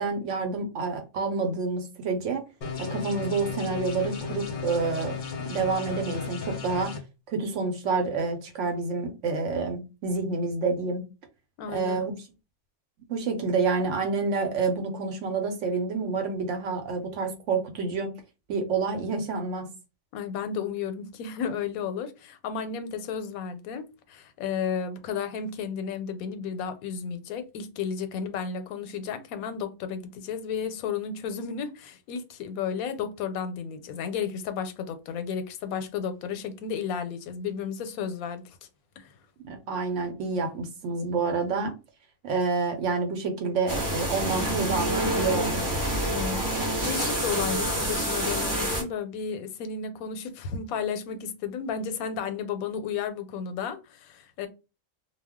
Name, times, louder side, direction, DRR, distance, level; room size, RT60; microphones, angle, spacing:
voice 1, 0.0-2.4 2.8-5.2 5.5-6.9 7.3-11.0 11.7-12.1 13.1-18.1 18.5-19.7 39.4-41.7 42.2-45.8, right 4 dB, 65° right, 0.9 m, -28 dB
sound 1, 2.6-7.0, left 5 dB, 50° left, 0.6 m, -34 dB
voice 2, 11.6-12.0 20.1-38.4 39.0-39.1 46.1-54.5, left 7 dB, 90° left, 1.0 m, -33 dB
sound 2, 43.7-48.8, right 1 dB, 20° right, 0.7 m, -27 dB
2.3 x 2.1 x 3.5 m
omnidirectional pair, 1.4 m